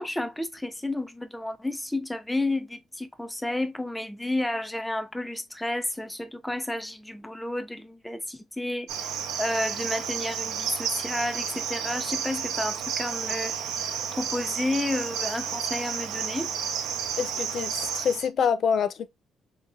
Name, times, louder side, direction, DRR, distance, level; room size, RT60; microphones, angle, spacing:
voice 1, 0.0-9.1 9.4-13.5 14.2-16.5, left 1 dB, 10° left, 0.6 m, -31 dB
Cricket, 8.9-18.3, right 8 dB, 90° right, 0.6 m, -31 dB
voice 2, 17.2-19.1, left 7 dB, 60° left, 0.4 m, -26 dB
3.6 x 3.0 x 2.5 m
cardioid pair, 90°, 0 cm